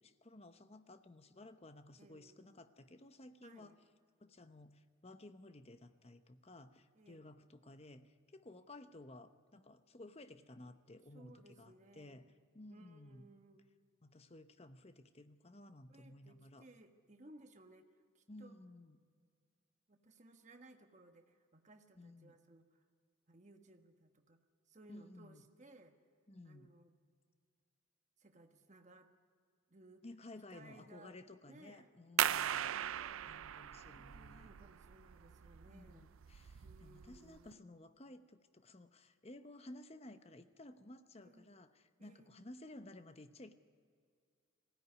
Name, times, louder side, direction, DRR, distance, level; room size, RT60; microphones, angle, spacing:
voice 1, 0.0-3.8 4.2-13.3 14.0-16.7 18.3-19.0 22.0-22.3 24.9-25.4 26.3-26.7 30.0-32.7 33.3-34.5 35.6-43.5, left 1 dB, 30° left, 10 dB, 0.9 m, -55 dB
voice 2, 2.0-2.4 3.4-3.8 6.9-7.3 11.1-12.1 12.7-13.6 15.9-17.9 18.1-18.6 19.9-22.8 23.3-24.4 24.7-26.0 26.4-26.9 28.2-29.1 29.7-30.0 30.5-31.2 31.5-31.9 32.6-33.5 33.9-36.1 36.6-37.6 41.2-41.5 42.0-42.3, right 2 dB, 35° right, 5 dB, 1.4 m, -61 dB
sound 1, 32.2-37.5, right 11 dB, 85° right, 0.4 m, -39 dB
20.0 x 16.5 x 9.7 m, 2.2 s
head